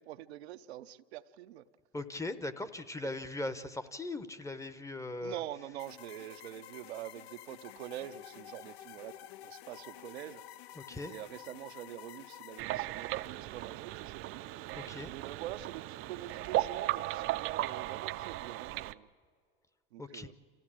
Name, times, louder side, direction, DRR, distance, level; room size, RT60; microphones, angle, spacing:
voice 1, 0.0-1.7 5.2-10.4 11.1-14.4 15.1-19.1 19.9-20.3, right 13 dB, 85° right, 10 dB, 0.7 m, -45 dB
voice 2, 1.9-5.4 10.8-11.1 14.8-15.1 20.0-20.3, left 2 dB, 10° left, 12 dB, 0.8 m, -39 dB
sound 1, 5.8-12.6, left 12 dB, 75° left, 0.6 m, -50 dB
sound 2, 12.6-18.9, right 16 dB, 40° right, 0.5 m, -36 dB
26.0 x 14.5 x 8.8 m, 2.1 s
supercardioid pair, 110°, 32 cm